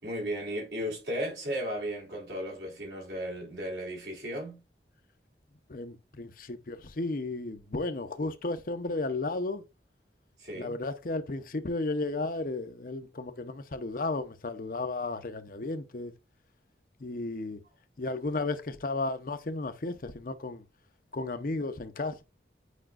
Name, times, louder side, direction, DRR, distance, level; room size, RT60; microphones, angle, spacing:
voice 1, 0.0-4.6 10.4-10.8, equal, 65° right, 3.6 m, -35 dB
voice 2, 5.7-9.6 10.5-16.1 17.0-17.6 18.0-20.6 21.1-22.2, left 2 dB, 50° left, 0.7 m, -34 dB
8.2 x 4.9 x 2.5 m
head